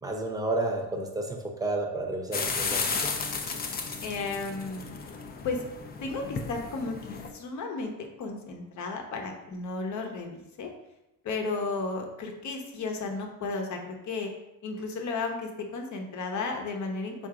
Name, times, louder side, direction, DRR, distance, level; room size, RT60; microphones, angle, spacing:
voice 1, 0.0-2.8, right 2 dB, 10° right, 1 dB, 0.7 m, -31 dB
sound 1, 2.3-7.3, left 4 dB, 25° left, 0.5 m, -33 dB
voice 2, 4.0-4.9 5.4-5.6 6.0-7.9 8.2-10.7 11.2-14.3 14.6-17.3, left 3 dB, 55° left, 3 dB, 0.9 m, -34 dB
3.7 x 2.6 x 4.7 m, 0.92 s
cardioid pair, 105°, 35 cm